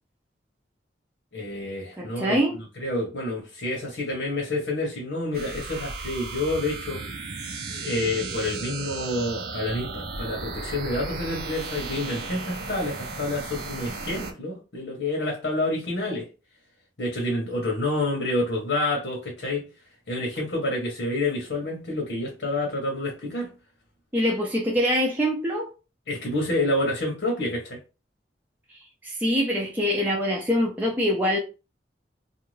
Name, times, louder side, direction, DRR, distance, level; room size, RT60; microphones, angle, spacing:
voice 1, 1.3-16.3 17.0-19.6 20.1-23.5 26.1-27.8, left 2 dB, 90° left, 1.0 m, -28 dB
voice 2, 2.0-2.6 24.1-25.7 28.7-31.4, equal, 10° right, 0.5 m, -24 dB
sound 1, 5.3-14.3, right 3 dB, 60° right, 0.6 m, -35 dB
2.5 x 2.3 x 3.1 m
head